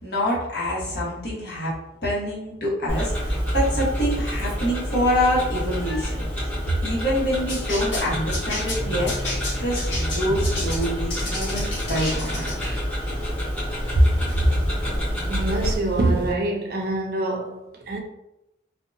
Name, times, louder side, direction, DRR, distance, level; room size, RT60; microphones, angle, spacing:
voice 1, 0.0-1.7 2.0-6.5 6.8-9.2 9.6-12.5 13.9-14.1, equal, 65° left, 1.0 m, -25 dB
Tick-tock, 2.9-15.8, equal, 10° left, 0.8 m, -28 dB
sound 1, 7.5-12.8, left 1 dB, 85° left, 0.9 m, -32 dB
sound 2, 8.5-16.5, equal, 30° left, 0.4 m, -35 dB
voice 2, 15.3-18.0, right 2 dB, 55° right, 0.4 m, -25 dB
2.6 x 2.1 x 2.6 m
head